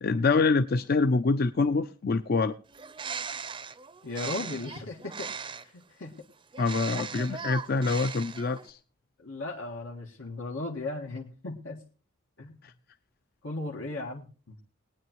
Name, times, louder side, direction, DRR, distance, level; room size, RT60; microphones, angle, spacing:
voice 1, 0.0-2.6 6.6-8.8 12.6-12.7, left 3 dB, 50° left, 10 dB, 0.5 m, -25 dB
Bird, 2.7-5.8 6.5-8.7, right 5 dB, 25° right, 0.5 m, -39 dB
voice 2, 4.0-6.2 9.2-11.8 12.4-12.6 13.4-14.6, left 2 dB, 90° left, -1 dB, 1.7 m, -37 dB
21.5 x 9.2 x 3.0 m, 0.37 s
head